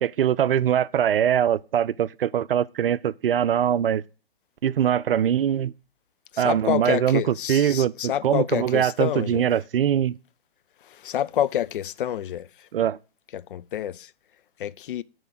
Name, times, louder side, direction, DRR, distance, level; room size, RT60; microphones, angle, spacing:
voice 1, 0.0-4.0 4.6-5.7 6.4-7.2 7.5-10.2 12.7-13.0, right 9 dB, 70° right, 0.5 m, -22 dB
voice 2, 6.3-9.5 10.8-12.7 13.3-14.1 14.6-15.0, left 11 dB, 60° left, 0.4 m, -28 dB
6.7 x 4.4 x 6.2 m
figure-of-eight pair, 120°, 30 cm